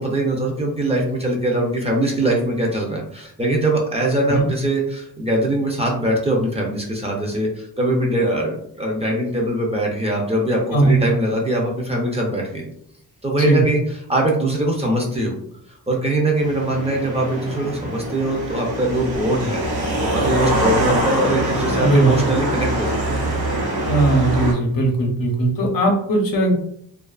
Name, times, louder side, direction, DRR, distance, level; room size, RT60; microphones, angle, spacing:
voice 1, 0.0-12.6 13.2-15.4 15.9-23.2, right 1 dB, 15° right, -2 dB, 0.4 m, -22 dB
voice 2, 13.3-13.6 21.8-22.2 23.9-26.5, right 2 dB, 65° left, 1 dB, 0.7 m, -18 dB
sound 1, 16.4-24.5, right 1 dB, 85° right, 0.7 m, -23 dB
2.3 x 2.3 x 2.3 m, 0.69 s
wide cardioid pair, 110°, 37 cm